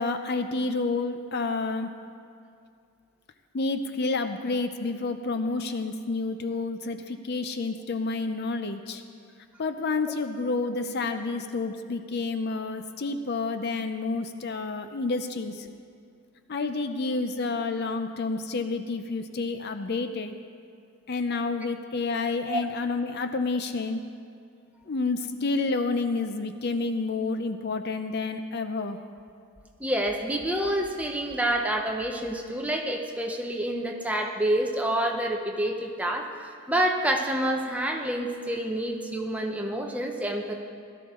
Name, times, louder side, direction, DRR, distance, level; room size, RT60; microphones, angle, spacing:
voice 1, 0.0-1.9 3.5-9.0 9.6-15.7 16.5-20.4 21.1-24.0 24.9-29.0, left 3 dB, 45° left, 8 dB, 0.5 m, -29 dB
voice 2, 29.8-40.5, right 1 dB, 5° right, 1 dB, 0.8 m, -28 dB
17.0 x 12.5 x 3.7 m, 2.3 s
head